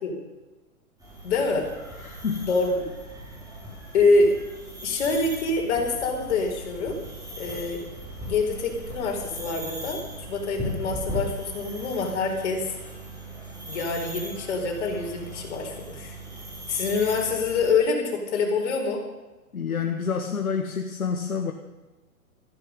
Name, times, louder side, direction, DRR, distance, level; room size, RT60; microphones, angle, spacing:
sound 1, 1.0-17.7, right 1 dB, 10° right, 5.7 m, -38 dB
voice 1, 1.2-1.7 2.5-2.9 3.9-4.4 4.8-7.0 7.4-7.8 8.3-12.7 13.7-16.2 16.7-19.0, left 3 dB, 50° left, 2 dB, 4.6 m, -25 dB
voice 2, 2.0-2.5 19.5-21.5, left 6 dB, 70° left, 5 dB, 1.6 m, -28 dB
16.0 x 14.5 x 5.3 m, 1.2 s
figure-of-eight pair, 120°, 43 cm